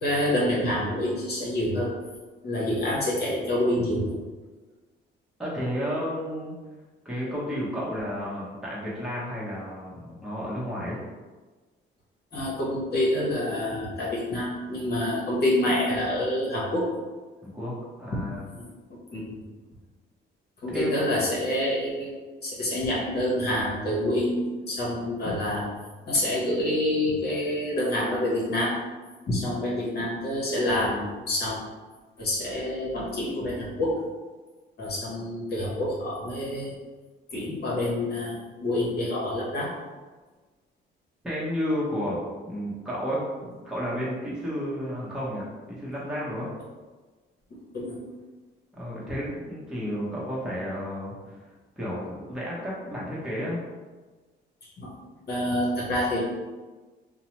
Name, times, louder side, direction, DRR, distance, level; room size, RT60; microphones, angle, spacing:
voice 1, 0.0-1.9 2.4-4.2 12.3-16.9 18.5-18.6 18.9-19.4 20.6-22.1 22.4-25.7 26.1-28.8 29.3-31.6 32.2-34.0 34.8-36.7 37.3-39.7 47.7-48.0 54.8-54.9 55.3-56.2, left 1 dB, 55° left, -5 dB, 0.9 m, -27 dB
voice 2, 5.4-6.5 7.0-11.0 17.5-17.7 18.0-18.4 20.7-21.0 41.2-46.5 48.7-51.4 51.8-53.6, equal, 5° right, -7 dB, 0.8 m, -32 dB
2.8 x 2.0 x 2.9 m, 1.3 s
cardioid pair, 90°, 20 cm